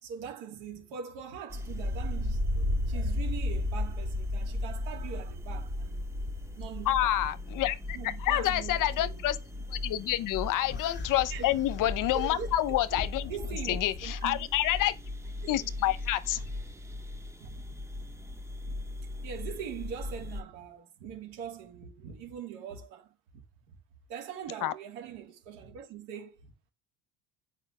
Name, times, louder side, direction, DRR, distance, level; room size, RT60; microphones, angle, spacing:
voice 1, 0.0-6.1 6.6-7.2 7.9-9.3 11.3-11.6 12.1-12.5 12.9-13.0 13.3-14.5 15.4-15.7 17.4-18.1 18.6-18.8 19.2-23.4 24.1-26.7, right 7 dB, 85° right, 3.5 m, -42 dB
sound 1, 1.5-20.4, left 2 dB, 5° right, 0.7 m, -39 dB
sound 2, 1.6-7.6, left 1 dB, 35° right, 2.7 m, -33 dB
voice 2, 6.9-9.4 9.7-13.3 13.7-15.0 15.5-16.4 24.6-24.7, left 14 dB, 45° left, 0.8 m, -28 dB
sound 3, 10.7-14.1, left 4 dB, 25° left, 1.7 m, -42 dB
8.6 x 5.0 x 4.9 m
cardioid pair, 145°, 44 cm